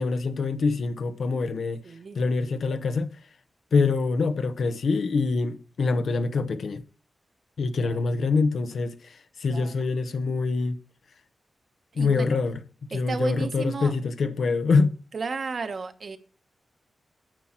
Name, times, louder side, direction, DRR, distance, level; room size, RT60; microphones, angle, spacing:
voice 1, 0.0-1.8 2.1-3.1 3.7-6.8 7.6-10.8 11.9-12.6 12.9-14.9, left 4 dB, 80° left, 0.8 m, -25 dB
voice 2, 1.8-2.2 7.8-8.0 9.5-9.7 11.9-12.4 12.9-13.9 15.1-16.2, right 4 dB, 60° right, 1.0 m, -33 dB
9.2 x 6.0 x 5.8 m
wide cardioid pair, 85°, 0 cm